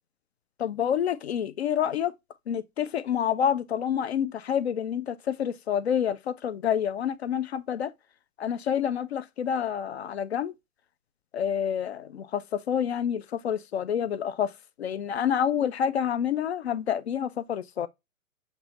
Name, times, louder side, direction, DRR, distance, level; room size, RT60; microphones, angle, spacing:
voice 1, 0.6-2.1 2.5-7.9 8.4-10.5 11.3-14.5 14.8-17.9, left 9 dB, 50° left, 0.6 m, -28 dB
6.7 x 2.6 x 3.0 m
figure-of-eight pair, 125°, 43 cm